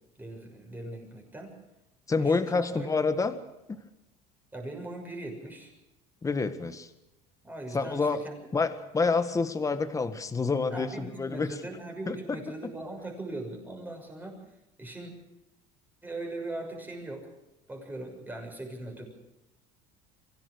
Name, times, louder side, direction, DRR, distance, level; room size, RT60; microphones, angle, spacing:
voice 1, 0.2-1.6 2.2-3.1 4.5-5.7 7.4-8.4 10.7-14.4 14.8-15.1 16.0-17.3 17.7-19.1, right 2 dB, 10° right, 2 dB, 6.6 m, -40 dB
voice 2, 2.1-3.4 6.2-6.9 7.7-8.2 8.5-11.5 12.1-12.2, left 4 dB, 15° left, 10 dB, 1.7 m, -28 dB
24.0 x 17.0 x 6.4 m, 0.92 s
cardioid pair, 130°, 20 cm